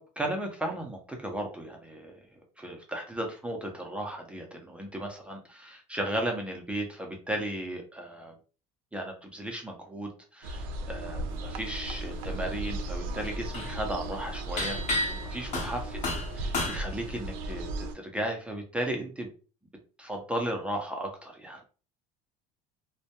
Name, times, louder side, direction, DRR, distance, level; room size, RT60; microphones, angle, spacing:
voice 1, 0.0-2.2 2.6-8.3 8.9-14.8 15.1-16.0 16.3-19.3 20.0-21.7, right 1 dB, 5° right, 1 dB, 0.6 m, -35 dB
sound 1, 10.4-18.0, right 1 dB, 70° right, 0.5 m, -36 dB
sound 2, 11.7-12.2 12.5-16.8, left 2 dB, 45° left, 0.9 m, -33 dB
2.2 x 2.1 x 2.8 m, 0.36 s
supercardioid pair, 100°, 17 cm